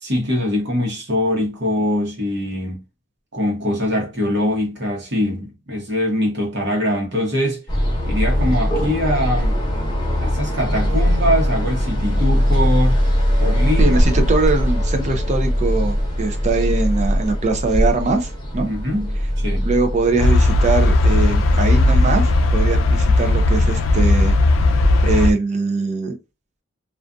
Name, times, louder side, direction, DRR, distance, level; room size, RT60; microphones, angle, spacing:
voice 1, 0.0-2.8 3.3-7.6 8.1-9.6 10.2-13.0 13.4-14.0 18.6-19.7, left 1 dB, 60° right, 1.0 m, -22 dB
sound 1, 7.7-23.5, equal, 25° left, 0.9 m, -21 dB
voice 2, 13.8-18.7 19.6-24.4 25.0-26.2, right 3 dB, 35° right, 0.4 m, -22 dB
sound 2, 20.2-25.3, left 2 dB, 90° left, 0.4 m, -16 dB
2.5 x 2.4 x 2.3 m
head